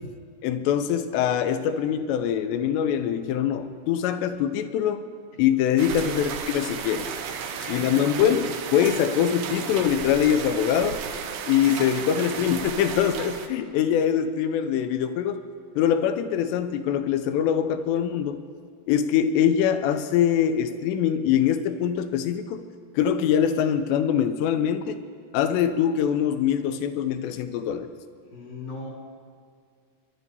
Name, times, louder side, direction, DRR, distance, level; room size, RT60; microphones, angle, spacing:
voice 1, 0.4-5.0 5.4-7.1 7.7-11.0 11.5-15.4 15.8-18.4 18.9-22.6 23.0-25.0 25.3-27.9, left 9 dB, 90° left, 9 dB, 2.9 m, -23 dB
sound 1, 5.8-13.5, right 7 dB, 80° right, 3.0 m, -34 dB
voice 2, 7.4-8.3 28.2-28.9, left 2 dB, 50° left, -2 dB, 2.0 m, -38 dB
28.0 x 12.0 x 2.7 m, 2.2 s
omnidirectional pair, 4.9 m